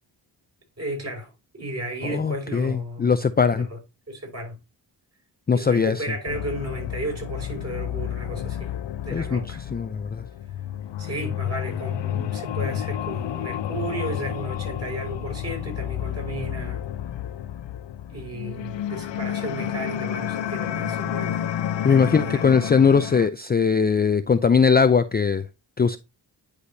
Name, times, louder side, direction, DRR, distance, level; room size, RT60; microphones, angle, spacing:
voice 1, 0.8-3.2 3.5-3.8 4.1-4.5 5.5-8.7 9.0-9.6 11.0-16.9 18.1-21.4 22.0-22.4, right 1 dB, 35° right, 5.1 m, -34 dB
voice 2, 2.0-3.7 5.5-6.0 9.1-9.4 9.7-10.2 21.8-25.4 25.8-26.0, left 6 dB, 25° left, 0.4 m, -20 dB
sound 1, 6.3-23.3, left 10 dB, 80° left, 0.7 m, -30 dB
10.0 x 4.9 x 2.7 m
wide cardioid pair, 105°, 44 cm